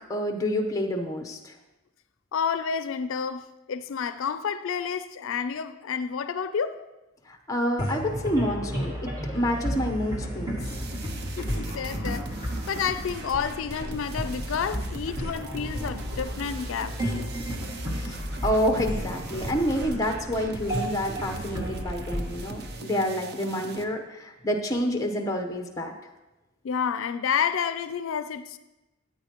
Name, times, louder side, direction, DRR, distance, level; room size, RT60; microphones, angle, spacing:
voice 1, 0.1-1.5 7.3-10.8 18.0-25.9, equal, 15° left, 0.8 m, -28 dB
voice 2, 2.3-6.8 11.4-12.3 12.7-17.0 26.6-28.6, left 7 dB, 80° left, 0.4 m, -30 dB
sound 1, 7.8-23.4, equal, 20° right, 2.0 m, -33 dB
sound 2, 10.6-23.8, right 2 dB, 50° right, 0.6 m, -41 dB
13.5 x 9.1 x 3.0 m
head